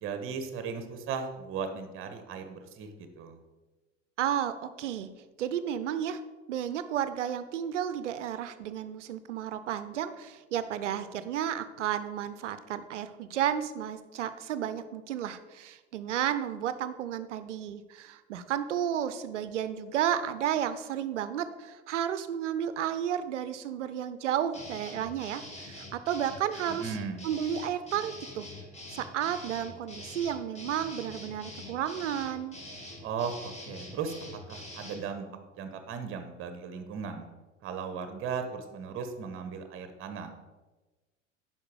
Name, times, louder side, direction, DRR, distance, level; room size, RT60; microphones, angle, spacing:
voice 1, 0.0-3.4 26.7-27.2 33.0-34.2 34.5-35.3 35.6-37.3 37.6-40.3, right 6 dB, 35° right, 8 dB, 1.2 m, -37 dB
voice 2, 4.2-5.1 5.4-6.2 6.5-26.9 27.2-28.5 28.9-32.6, right 9 dB, 70° right, 13 dB, 0.7 m, -32 dB
sound 1, 24.5-35.0, left 1 dB, 15° left, 2.0 m, -45 dB
9.7 x 5.9 x 4.8 m, 1.2 s
figure-of-eight pair, 75°, 37 cm